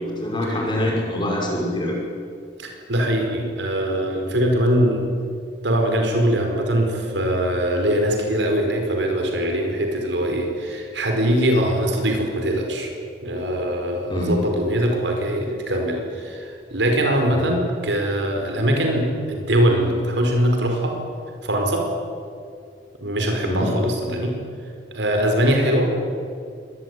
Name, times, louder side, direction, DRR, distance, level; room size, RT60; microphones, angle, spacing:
voice 1, 0.2-2.0 14.1-14.3 17.3-17.5 23.4-23.7, left 1 dB, 25° left, -2 dB, 5.9 m, -24 dB
voice 2, 2.6-5.1 5.6-12.9 13.2-21.0 21.4-21.9 23.0-24.4 24.9-25.9, equal, 85° right, 3 dB, 5.0 m, -22 dB
24.5 x 21.0 x 9.8 m, 2.3 s
head